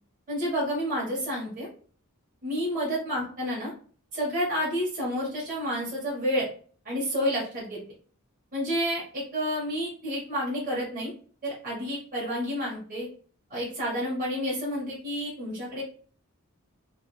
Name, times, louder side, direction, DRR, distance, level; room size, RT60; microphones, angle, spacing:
voice 1, 0.3-1.7 2.4-3.7 4.1-6.5 6.8-7.8 8.5-11.1 11.4-13.1 13.5-15.8, equal, 40° right, -6 dB, 1.2 m, -30 dB
3.3 x 2.4 x 3.1 m, 0.43 s
head